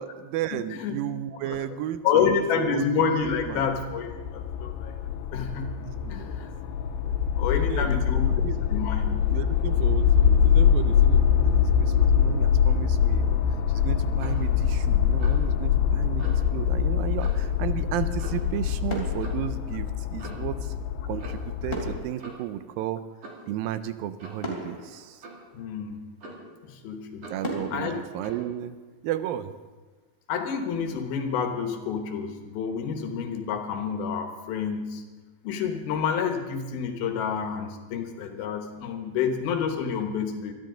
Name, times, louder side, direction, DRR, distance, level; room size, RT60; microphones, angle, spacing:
voice 1, 0.0-2.8 3.2-3.7 5.9-6.5 7.0-8.6 9.3-13.4 13.7-20.8 21.0-23.0 23.5-25.2 27.3-28.8 29.0-29.5, right 11 dB, 80° right, 12 dB, 2.1 m, -34 dB
voice 2, 0.5-1.0 1.5-1.6 2.0-5.0 5.3-5.8 6.1-6.5 7.4-8.3 8.7-9.1 20.2-20.4 25.5-26.0 26.6-27.3 27.7-28.0 30.3-35.0 35.4-40.5, left 6 dB, 75° left, 4 dB, 3.0 m, -28 dB
sound 1, 3.2-22.0, left 8 dB, 90° left, 2.7 m, -24 dB
Clock, 14.2-14.5 15.2-15.5 16.2-16.4 17.2-17.5 18.2-18.5 19.2-19.4 20.2-20.5 21.2-21.5 22.2-22.5 23.2-23.5 24.2-24.5 25.2-25.5 26.2-26.6 27.2-27.5 28.2-28.5, right 2 dB, 45° right, 3.2 m, -43 dB
sound 2, 18.9-20.3 21.7-23.6 24.0-24.1 24.4-26.0 26.5-26.6 27.4-29.3 29.6-29.9, equal, 15° left, 2.6 m, -39 dB
23.0 x 13.0 x 3.8 m, 1.3 s
omnidirectional pair, 4.5 m